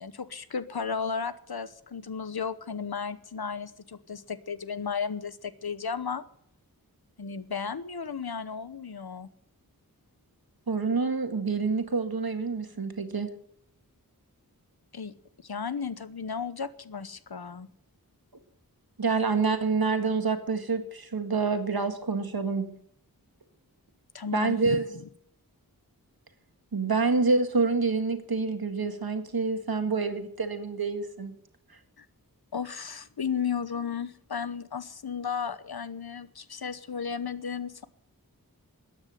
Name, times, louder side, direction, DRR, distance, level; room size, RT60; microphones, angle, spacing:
voice 1, 0.0-6.2 7.2-9.3 14.9-17.7 24.1-25.0 32.0-32.1 32.5-37.8, left 6 dB, 90° left, 14 dB, 1.0 m, -34 dB
voice 2, 10.7-13.3 19.0-22.8 24.3-24.8 26.7-31.3, right 4 dB, 75° right, 7 dB, 1.9 m, -27 dB
13.5 x 9.7 x 9.4 m, 0.65 s
wide cardioid pair, 50°, 37 cm